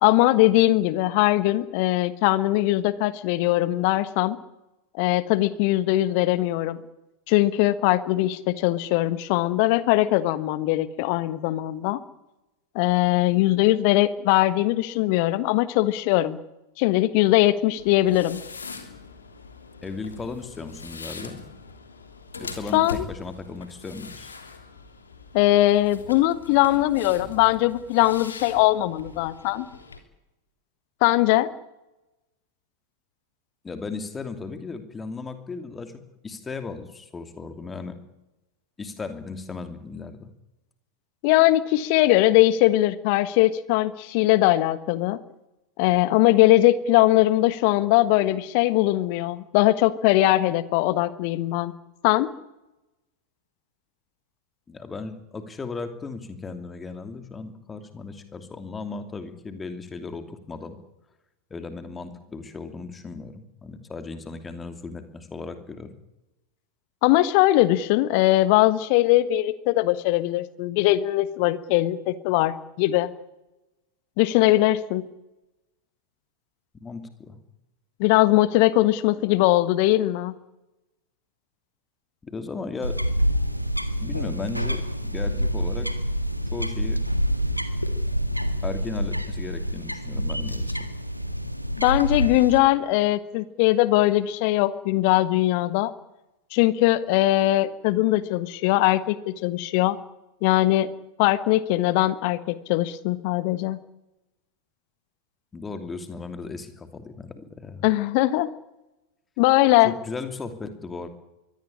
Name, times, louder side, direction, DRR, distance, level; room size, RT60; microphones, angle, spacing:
voice 1, 0.0-4.4 5.0-6.8 7.3-12.0 12.7-16.4 16.8-18.4 22.7-23.0 25.3-29.6 31.0-31.5 41.2-45.2 45.8-51.7 52.0-52.3 67.0-73.1 74.2-75.0 78.0-80.3 91.8-95.9 96.5-100.0 100.4-100.9 101.2-103.8 107.8-108.5 109.4-109.9, left 16 dB, 45° left, 15 dB, 1.3 m, -21 dB
sound 1, 17.8-30.0, left 4 dB, 75° left, 3.3 m, -42 dB
voice 2, 19.8-21.4 22.3-24.3 33.6-38.0 38.8-40.3 54.7-60.8 61.5-65.9 76.8-77.4 82.2-83.0 84.0-85.9 86.5-87.0 88.6-90.9 105.5-107.9 109.8-111.1, left 4 dB, 15° left, 8 dB, 2.8 m, -36 dB
sound 2, 82.8-92.6, equal, 90° right, 1.8 m, -27 dB
23.5 x 17.5 x 10.0 m, 0.96 s
figure-of-eight pair, 90°, 0 cm